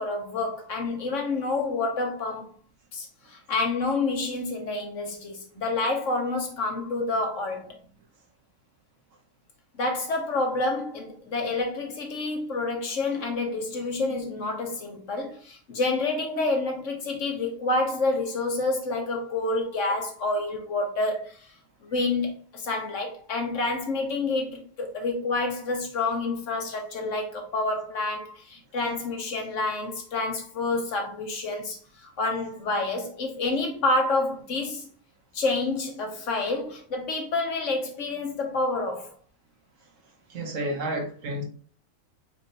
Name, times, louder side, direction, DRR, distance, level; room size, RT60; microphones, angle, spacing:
voice 1, 0.0-2.5 2.9-7.7 9.8-21.4 21.8-34.9 35.3-39.1, left 2 dB, 70° left, 1.4 m, -28 dB
voice 2, 40.3-41.4, right 1 dB, 75° right, 1.4 m, -30 dB
4.3 x 4.3 x 2.7 m
omnidirectional pair, 1.4 m